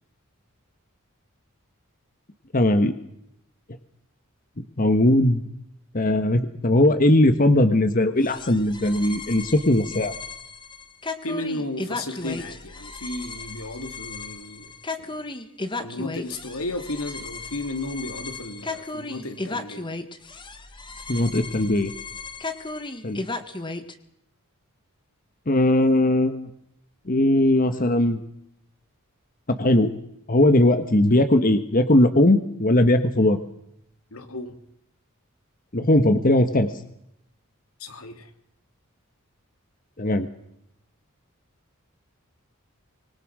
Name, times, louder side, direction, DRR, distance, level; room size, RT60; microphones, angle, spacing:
voice 1, 2.5-2.9 4.8-5.4 5.9-10.1 21.1-21.9 23.0-23.2 25.5-26.5 27.1-28.2 29.6-29.9 30.3-33.4 35.7-36.7 40.0-40.3, left 1 dB, 40° left, 9 dB, 1.3 m, -19 dB
sound 1, 8.2-23.9, left 3 dB, 20° left, 1.7 m, -35 dB
voice 2, 11.2-14.7 15.0-15.2 15.8-19.9 34.1-34.6 37.8-38.3, left 2 dB, 85° left, 6 dB, 3.0 m, -33 dB
25.0 x 23.0 x 6.2 m, 0.75 s
head